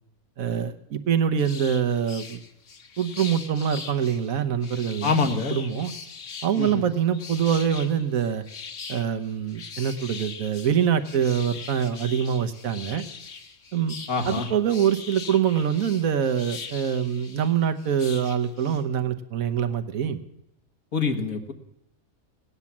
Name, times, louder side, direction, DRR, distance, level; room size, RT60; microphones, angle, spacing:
voice 1, 0.4-2.4 3.0-5.9 6.4-8.4 8.9-13.0 13.7-14.0 14.2-20.2, right 8 dB, 75° right, 10 dB, 1.4 m, -25 dB
sound 1, 1.4-18.8, left 5 dB, 65° left, 1.6 m, -41 dB
voice 2, 5.0-5.6 6.6-6.8 14.1-14.5 20.9-21.5, left 5 dB, 80° left, 4 dB, 1.9 m, -25 dB
18.0 x 9.7 x 7.2 m, 0.84 s
omnidirectional pair, 1.5 m